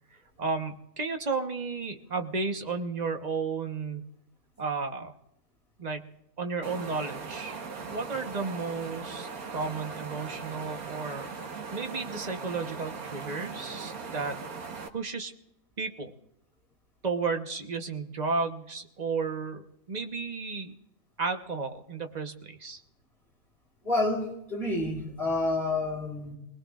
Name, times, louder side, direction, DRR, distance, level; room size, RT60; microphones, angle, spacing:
voice 1, 0.4-4.1 4.6-5.1 5.8-6.1 6.4-11.3 11.7-14.4 14.9-15.3 15.8-16.1 17.0-20.7 21.2-22.8, right 4 dB, 30° right, 5 dB, 1.1 m, -33 dB
sound 1, 6.6-14.9, right 5 dB, 85° right, 1.7 m, -39 dB
voice 2, 23.8-26.3, left 2 dB, 40° left, -2 dB, 4.8 m, -29 dB
27.5 x 19.5 x 2.5 m, 0.83 s
omnidirectional pair, 1.5 m